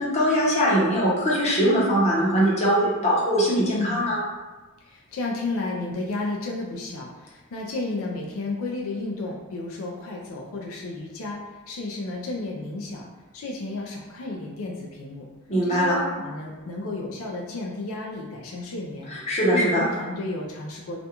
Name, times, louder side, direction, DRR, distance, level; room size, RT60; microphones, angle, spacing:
voice 1, 0.0-4.2 15.5-15.9 19.1-19.8, equal, 35° left, -6 dB, 0.7 m, -21 dB
voice 2, 3.7-4.1 4.9-11.4 11.7-13.0 13.3-15.3 15.6-19.1 19.5-21.0, left 2 dB, 85° left, -1 dB, 0.4 m, -32 dB
2.4 x 2.2 x 2.8 m, 1.2 s
head